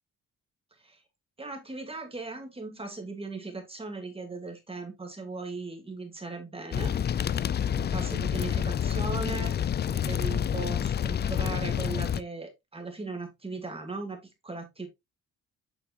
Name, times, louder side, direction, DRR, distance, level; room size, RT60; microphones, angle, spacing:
voice 1, 1.4-7.3 7.7-9.6 9.8-14.9, right 3 dB, 20° right, 2.6 m, -38 dB
sound 1, 6.7-12.2, left 9 dB, 35° left, 0.4 m, -28 dB
8.3 x 5.9 x 2.5 m
cardioid pair, 90°, 30 cm